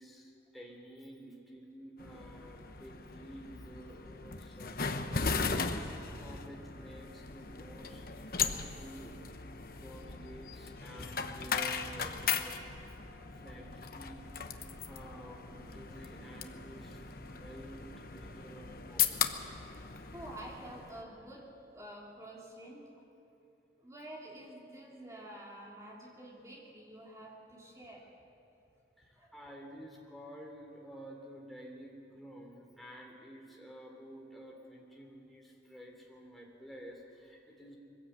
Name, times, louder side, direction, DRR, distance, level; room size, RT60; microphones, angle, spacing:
voice 1, 0.0-9.1 9.8-12.6 13.4-20.0 29.0-37.8, equal, ahead, -1 dB, 3.0 m, -51 dB
sound 1, 2.0-21.0, left 6 dB, 55° left, 0.9 m, -38 dB
voice 2, 20.1-22.8 23.8-28.1 29.2-29.3, right 1 dB, 15° right, -3 dB, 3.2 m, -49 dB
22.0 x 15.5 x 8.2 m, 2.7 s
head